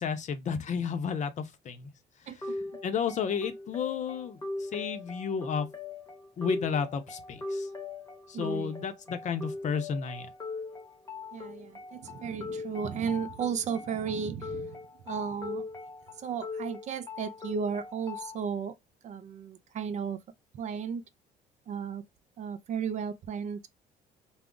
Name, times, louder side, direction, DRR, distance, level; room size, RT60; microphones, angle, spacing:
voice 1, 0.0-1.9 2.8-5.7 6.4-7.7 8.3-10.3, left 6 dB, 45° left, 0.6 m, -32 dB
voice 2, 2.3-2.6 8.3-8.8 11.3-14.8 15.1-15.7 16.2-18.8 19.0-20.2 20.5-21.0 21.7-22.0 22.4-23.7, right 6 dB, 45° right, 0.4 m, -34 dB
sound 1, 2.4-18.4, left 3 dB, 20° left, 0.8 m, -40 dB
2.4 x 2.0 x 3.6 m
cardioid pair, 110°, 17 cm